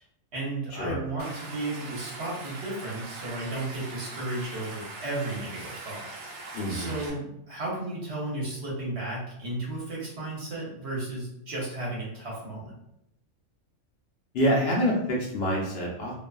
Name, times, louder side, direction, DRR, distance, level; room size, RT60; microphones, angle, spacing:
voice 1, 0.3-6.1 6.7-12.8, right 2 dB, 60° right, -5 dB, 1.1 m, -34 dB
Stream, 1.2-7.1, right 3 dB, 90° right, 1.0 m, -41 dB
voice 2, 6.5-6.9 14.3-16.2, equal, 65° left, -3 dB, 0.7 m, -26 dB
2.5 x 2.3 x 2.3 m, 0.80 s
omnidirectional pair, 1.3 m